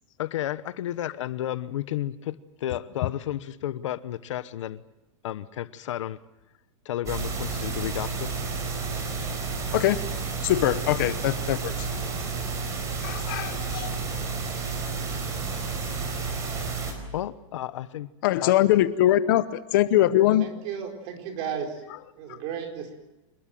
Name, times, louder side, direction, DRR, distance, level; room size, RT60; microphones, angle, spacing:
voice 1, 0.2-4.8 5.2-6.2 6.8-8.3 17.1-18.1 18.4-18.5, left 12 dB, 65° left, 14 dB, 1.1 m, -32 dB
sound 1, 7.1-16.9, right 4 dB, 20° right, 4.6 m, -31 dB
voice 2, 9.7-10.0 10.4-11.9 13.0-13.9 16.0-16.1 18.2-20.5, left 13 dB, 40° left, 13 dB, 0.8 m, -22 dB
voice 3, 20.4-21.8 22.2-23.0, right 7 dB, 35° right, 3 dB, 4.7 m, -34 dB
26.5 x 21.5 x 7.6 m, 0.99 s
supercardioid pair, 175°, 17 cm